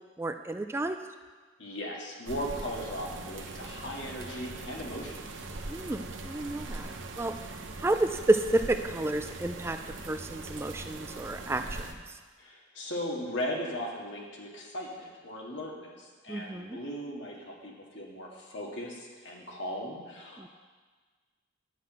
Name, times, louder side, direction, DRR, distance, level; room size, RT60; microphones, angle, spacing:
voice 1, 0.2-1.0 5.7-6.9 7.2-7.3 7.8-9.8 10.1-11.9 16.3-16.8 20.4-20.5, right 2 dB, 15° right, 8 dB, 0.3 m, -30 dB
voice 2, 1.6-5.2 12.4-20.5, equal, 70° left, -2 dB, 1.9 m, -38 dB
sound 1, 2.3-11.9, right 2 dB, 80° right, 0.9 m, -41 dB
10.0 x 5.9 x 7.5 m, 1.4 s
head